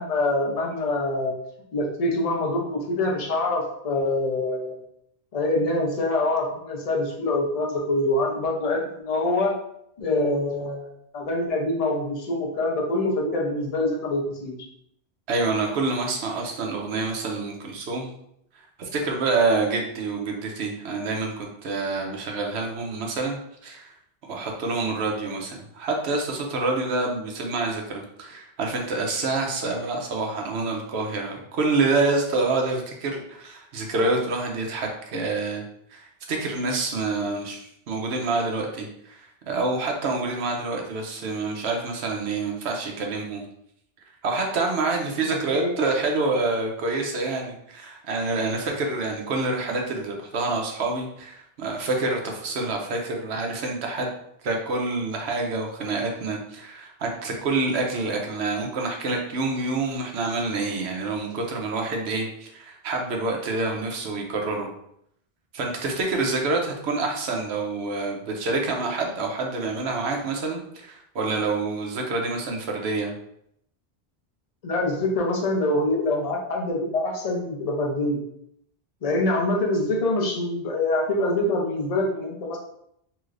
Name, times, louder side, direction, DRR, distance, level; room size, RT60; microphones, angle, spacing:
voice 1, 0.0-1.3 1.7-4.8 5.3-9.6 10.0-10.9 11.1-14.6 45.3-45.8 74.6-78.2 79.0-82.6, left 2 dB, 40° left, -1 dB, 0.6 m, -25 dB
voice 2, 15.3-18.1 18.8-23.4 23.6-23.9 24.3-35.6 35.9-43.4 44.2-54.1 54.4-64.7 65.5-73.1, right 3 dB, 85° right, 1 dB, 0.9 m, -27 dB
3.2 x 3.0 x 2.4 m, 0.74 s
omnidirectional pair, 1.1 m